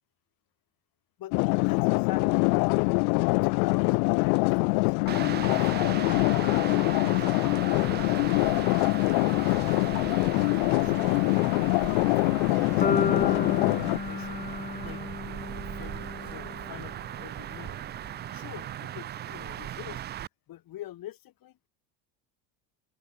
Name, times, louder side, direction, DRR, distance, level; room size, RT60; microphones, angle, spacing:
voice 1, 1.2-3.0 3.4-5.0 5.3-6.1 6.7-9.9 10.5-13.1 13.7-14.5 14.8-15.0 15.4-17.8 18.3-20.0 20.5-21.6, left 13 dB, 50° left, 6.0 m, -46 dB
sound 1, 1.3-14.0, left 40 dB or more, 80° left, 0.8 m, -24 dB
sound 2, 5.1-20.3, right 12 dB, 25° right, 0.3 m, -38 dB
sound 3, 12.8-16.9, left 5 dB, 20° left, 1.6 m, -32 dB
open air
cardioid pair, 120°, 44 cm